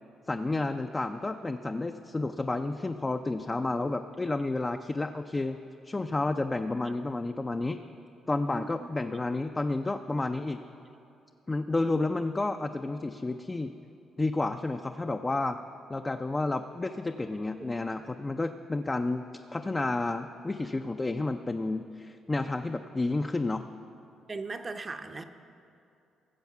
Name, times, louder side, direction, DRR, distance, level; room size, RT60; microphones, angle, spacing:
voice 1, 0.3-5.6 5.8-7.8 8.3-10.6 11.5-13.7 14.2-15.6 15.9-19.2 19.5-23.7, left 2 dB, 20° left, 6 dB, 0.4 m, -31 dB
voice 2, 8.5-8.9 17.5-17.7 24.3-25.2, right 3 dB, 30° right, 7 dB, 0.6 m, -39 dB
15.0 x 7.1 x 5.8 m, 2.6 s
cardioid pair, 90°, 0 cm